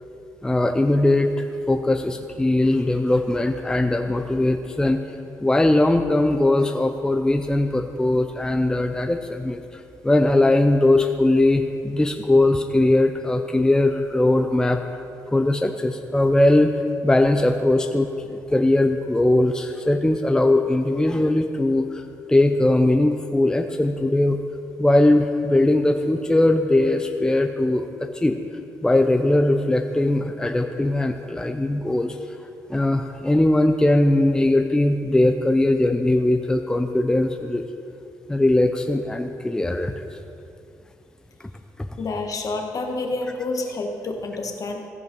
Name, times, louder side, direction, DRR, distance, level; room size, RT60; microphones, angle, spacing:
voice 1, 0.4-5.0 5.4-14.8 15.3-16.7 17.0-18.1 18.5-24.4 24.8-28.4 28.8-32.2 32.7-37.6 38.3-40.1 41.8-41.9, left 1 dB, 10° left, 6 dB, 0.5 m, -20 dB
voice 2, 42.0-44.9, left 2 dB, 50° left, 4 dB, 1.3 m, -28 dB
15.0 x 5.5 x 5.3 m, 2.6 s
cardioid pair, 85°, 7 cm